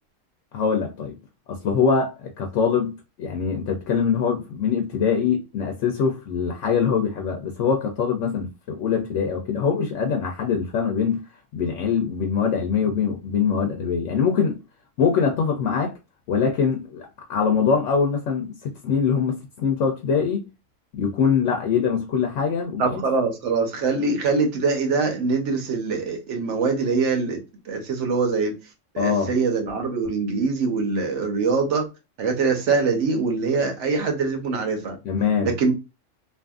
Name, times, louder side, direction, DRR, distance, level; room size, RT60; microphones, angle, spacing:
voice 1, 0.5-1.1 1.5-2.9 3.2-11.2 11.5-14.6 15.0-15.9 16.3-20.5 21.0-23.0 29.0-29.3 35.0-35.5, left 6 dB, 75° left, 0.9 m, -23 dB
voice 2, 22.8-27.4 27.6-28.6 28.9-31.8 32.2-35.0 35.4-35.7, right 4 dB, 70° right, 1.1 m, -23 dB
2.7 x 2.5 x 2.3 m
omnidirectional pair, 1.3 m